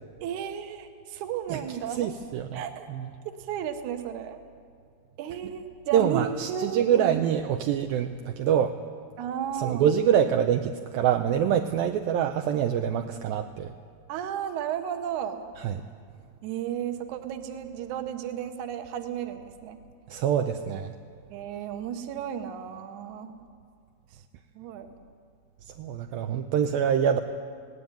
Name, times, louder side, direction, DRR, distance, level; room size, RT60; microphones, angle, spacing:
voice 1, 0.2-2.1 2.5-2.9 3.4-4.4 5.2-7.2 9.2-9.8 14.1-15.4 16.4-19.8 21.3-23.3 24.6-24.9, right 9 dB, 65° right, 7 dB, 2.1 m, -33 dB
voice 2, 2.0-2.6 2.9-3.1 5.9-8.8 9.5-13.7 15.6-15.8 20.1-20.9 25.8-27.2, right 9 dB, 80° right, 6 dB, 2.2 m, -25 dB
19.0 x 17.5 x 9.0 m, 2.2 s
omnidirectional pair, 4.8 m